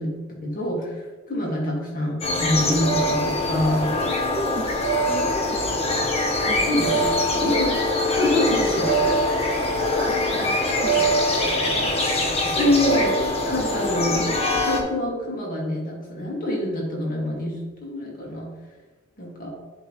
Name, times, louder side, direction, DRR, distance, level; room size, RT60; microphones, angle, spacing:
voice 1, 0.0-4.0 6.7-6.9 7.4-7.7 8.1-8.9 12.4-13.1 13.5-18.5 19.2-19.5, left 1 dB, 45° left, -3 dB, 1.9 m, -25 dB
sound 1, 2.2-14.8, left 1 dB, 30° left, 1.0 m, -23 dB
voice 2, 4.3-6.0 6.5-7.6 8.7-12.6 13.6-13.9, equal, 45° right, -3 dB, 1.9 m, -34 dB
11.0 x 3.7 x 3.1 m, 1.3 s
head